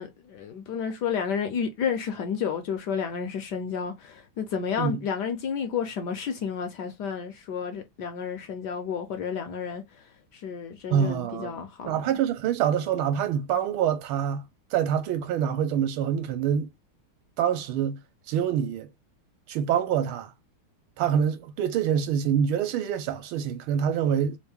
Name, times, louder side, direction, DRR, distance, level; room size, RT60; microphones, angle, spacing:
voice 1, 0.0-12.0, left 7 dB, 70° left, 1.0 m, -31 dB
voice 2, 10.9-14.4 14.7-16.7 17.4-18.0 18.3-18.9 19.5-20.3 21.0-24.4, right 8 dB, 75° right, 1.5 m, -26 dB
3.6 x 2.5 x 3.4 m
omnidirectional pair, 2.4 m